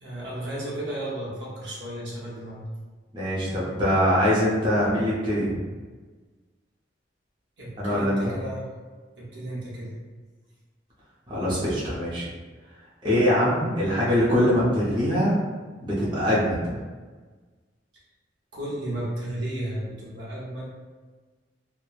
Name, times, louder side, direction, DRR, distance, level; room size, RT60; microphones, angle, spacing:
voice 1, 0.0-2.6 7.6-8.7 9.2-9.9 18.5-20.6, right 1 dB, 65° right, -6 dB, 0.8 m, -33 dB
voice 2, 3.1-5.6 7.8-8.4 11.3-12.3 13.0-15.3 15.8-16.7, equal, 25° right, -8 dB, 0.6 m, -23 dB
3.0 x 2.1 x 2.3 m, 1.3 s
head